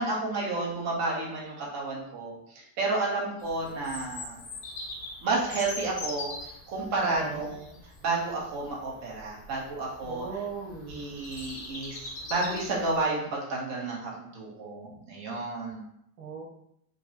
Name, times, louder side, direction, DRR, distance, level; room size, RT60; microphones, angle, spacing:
voice 1, 0.0-4.4 5.2-6.3 6.7-7.5 8.0-10.3 10.9-15.8, right 3 dB, 35° right, -3 dB, 1.2 m, -31 dB
Bird vocalization bird call bird song, 3.4-13.0, left 2 dB, 20° left, 0.3 m, -42 dB
voice 2, 7.0-7.5 10.0-11.0 16.2-16.5, right 5 dB, 90° right, -1 dB, 1.1 m, -37 dB
5.3 x 2.2 x 2.9 m, 0.74 s
supercardioid pair, 155°, 46 cm